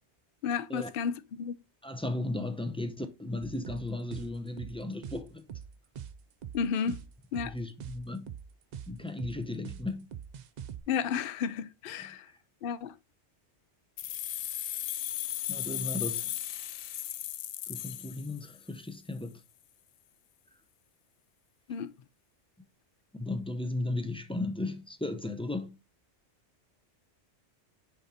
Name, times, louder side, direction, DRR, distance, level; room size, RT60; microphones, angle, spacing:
voice 1, 0.4-1.6 6.5-7.0 7.3-7.5 10.9-12.3 12.6-12.9 21.7-21.9, left 7 dB, 60° left, 0.7 m, -32 dB
voice 2, 1.8-5.4 6.8-6.9 7.4-8.3 8.9-10.1 12.0-12.1 15.5-16.3 17.7-19.4 23.1-25.8, left 2 dB, 5° left, 0.6 m, -35 dB
sound 1, 3.4-10.8, right 8 dB, 60° right, 0.5 m, -43 dB
sound 2, 14.0-18.8, left 12 dB, 90° left, 0.9 m, -36 dB
6.5 x 4.2 x 4.1 m
omnidirectional pair, 1.2 m